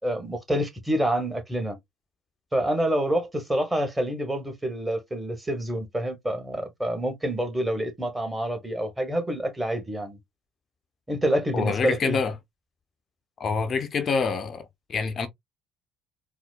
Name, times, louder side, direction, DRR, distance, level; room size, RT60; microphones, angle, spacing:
voice 1, 0.0-1.8 2.5-10.2 11.1-12.2, right 1 dB, 15° right, 1.4 m, -27 dB
voice 2, 11.5-12.3 13.4-15.3, left 5 dB, 45° left, 0.6 m, -26 dB
4.1 x 2.1 x 2.4 m
hypercardioid pair, 55°, 0 cm